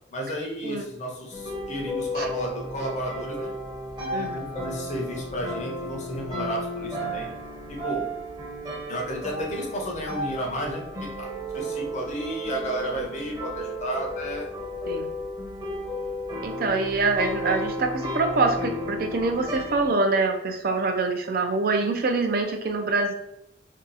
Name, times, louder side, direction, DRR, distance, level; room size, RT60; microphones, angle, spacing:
voice 1, 0.1-3.5 4.1-7.3 7.7-8.1 8.9-11.3 11.5-14.5, equal, 40° left, 0 dB, 0.7 m, -32 dB
sound 1, 1.3-19.9, equal, 25° right, 0.8 m, -33 dB
voice 2, 16.4-23.1, right 3 dB, 50° right, 5 dB, 0.5 m, -25 dB
2.7 x 2.3 x 3.9 m, 0.80 s
head